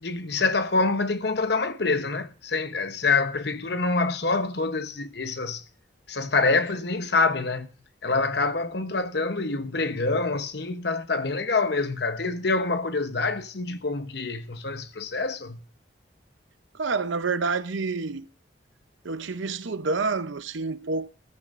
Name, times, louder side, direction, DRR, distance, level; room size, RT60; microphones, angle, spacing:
voice 1, 0.0-5.6 6.1-7.7 8.0-15.6, left 3 dB, 55° left, 1.0 m, -26 dB
voice 2, 16.7-18.3 19.0-21.1, right 4 dB, 80° right, 0.7 m, -28 dB
14.0 x 14.0 x 2.6 m
head